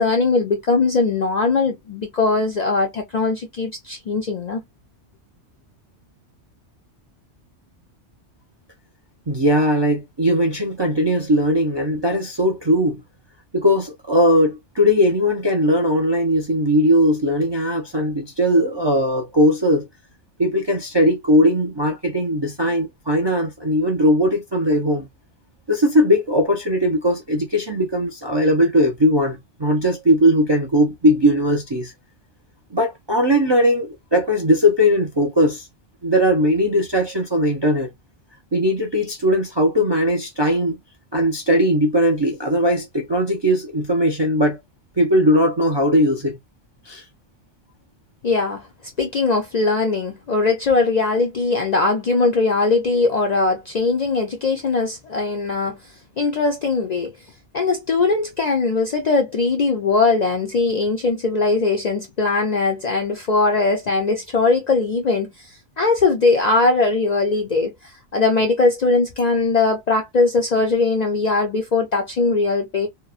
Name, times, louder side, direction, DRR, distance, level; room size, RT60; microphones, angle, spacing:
voice 1, 0.0-4.6 48.2-48.7 49.0-55.8 56.2-57.1 57.5-72.9, left 3 dB, 55° left, 0.5 m, -20 dB
voice 2, 9.3-13.0 13.5-19.9 20.4-25.1 25.7-31.9 32.7-35.7 36.0-37.9 38.5-40.8 41.1-44.6 45.0-46.4 46.9-47.0, equal, 40° right, 0.4 m, -19 dB
2.9 x 2.0 x 2.4 m
omnidirectional pair, 1.2 m